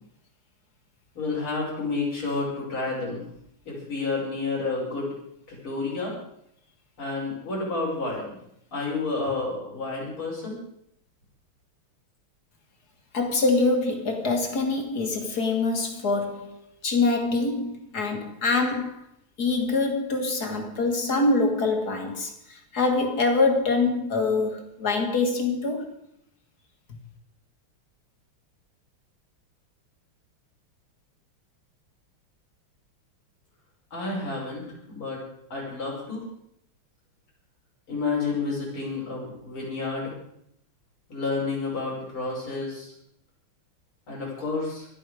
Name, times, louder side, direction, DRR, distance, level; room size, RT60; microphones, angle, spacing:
voice 1, 1.1-3.2 3.7-5.1 5.5-6.1 7.0-8.4 8.7-10.6 33.9-35.2 35.5-36.2 37.9-40.1 41.1-42.9 44.1-44.9, left 3 dB, 75° left, 6.5 m, -30 dB
voice 2, 13.1-19.0 19.4-25.9, left 3 dB, 50° left, 2.3 m, -25 dB
25.0 x 8.5 x 5.0 m
omnidirectional pair, 2.3 m